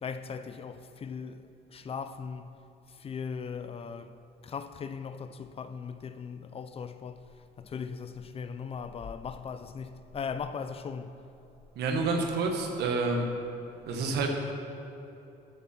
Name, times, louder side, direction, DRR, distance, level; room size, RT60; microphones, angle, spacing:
voice 1, 0.0-2.5 2.9-4.2 4.4-7.3 7.6-11.2, left 6 dB, 35° left, 0.5 m, -39 dB
voice 2, 11.7-13.3 13.9-14.3, right 3 dB, 75° right, 1.5 m, -28 dB
13.0 x 7.7 x 4.4 m
cardioid pair, 110°, 17 cm